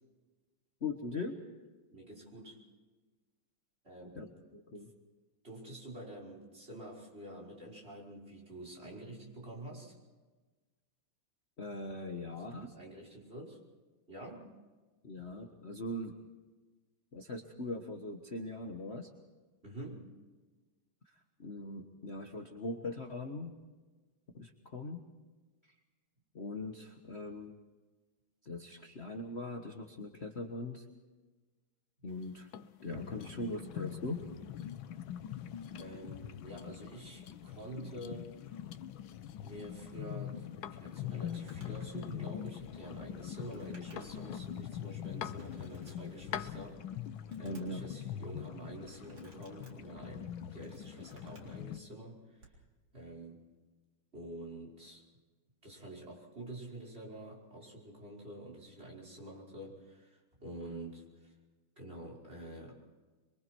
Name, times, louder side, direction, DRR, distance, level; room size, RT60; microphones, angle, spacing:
voice 1, 0.8-1.4 4.1-4.3 4.5-4.9 11.6-12.7 15.0-16.1 17.1-19.1 21.0-23.5 24.3-25.0 25.6-25.7 26.3-27.6 28.4-30.8 32.0-32.5 32.8-34.2 47.4-47.8, left 2 dB, 35° left, 3 dB, 1.5 m, -41 dB
voice 2, 1.9-2.6 3.8-4.3 5.4-10.0 12.3-13.6 14.1-14.5 19.6-20.1 35.8-38.3 39.4-40.5 40.7-46.8 47.4-52.6 52.9-53.4 54.1-55.0 55.6-61.3 61.8-62.8, right 1 dB, 30° right, -1 dB, 5.9 m, -47 dB
sound 1, 32.1-46.7, left 9 dB, 60° left, 1.2 m, -51 dB
sound 2, 32.9-51.8, left 10 dB, 80° left, 1.6 m, -44 dB
Crumpling crinkling, 41.2-44.3 44.7-44.8 45.4-46.5 46.9-47.9 48.8-49.7 50.3-51.6 52.3-52.6, right 2 dB, 65° right, 4.5 m, -61 dB
27.5 x 23.0 x 4.6 m, 1.3 s
omnidirectional pair, 2.2 m